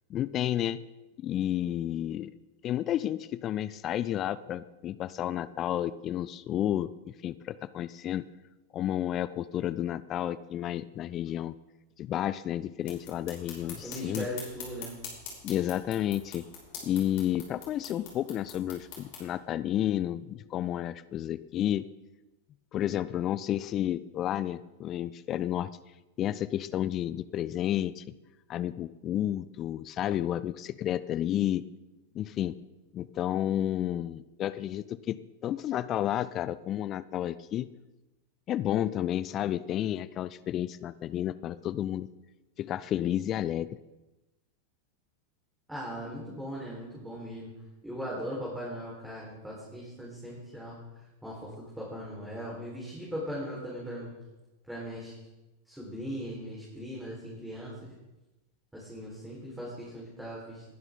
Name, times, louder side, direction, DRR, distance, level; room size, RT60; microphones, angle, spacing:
voice 1, 0.1-0.8 1.2-2.3 2.6-8.2 8.7-11.5 12.0-14.3 15.4-16.4 16.8-21.8 22.7-25.7 26.2-28.0 28.5-31.6 32.1-32.5 32.9-35.2 35.4-37.7 38.5-42.1 42.6-43.8, left 11 dB, 30° left, 17 dB, 0.4 m, -31 dB
sound 1, 12.8-19.2, left 6 dB, 50° left, 5.8 m, -45 dB
voice 2, 13.8-14.9 45.7-47.5 47.8-50.8 51.2-54.1 54.7-55.1 55.7-57.9 58.7-60.6, equal, 5° right, -5 dB, 4.4 m, -39 dB
20.5 x 10.5 x 3.8 m, 1.0 s
figure-of-eight pair, 90°, 0 cm